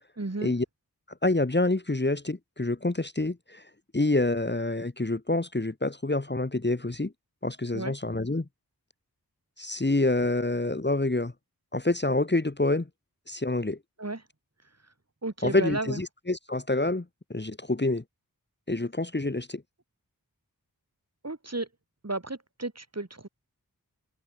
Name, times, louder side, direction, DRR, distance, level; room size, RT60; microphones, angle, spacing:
voice 1, 0.2-0.5 7.7-7.9 14.0-14.2 15.2-16.0 21.2-21.7 22.0-23.3, right 2 dB, 45° right, 3.5 m, -33 dB
voice 2, 1.2-3.6 3.9-7.1 7.4-8.4 9.6-11.3 11.7-12.9 13.3-13.8 15.4-17.0 17.3-18.0 18.7-19.6, left 2 dB, 30° left, 1.5 m, -27 dB
wide cardioid pair, 45°, 37 cm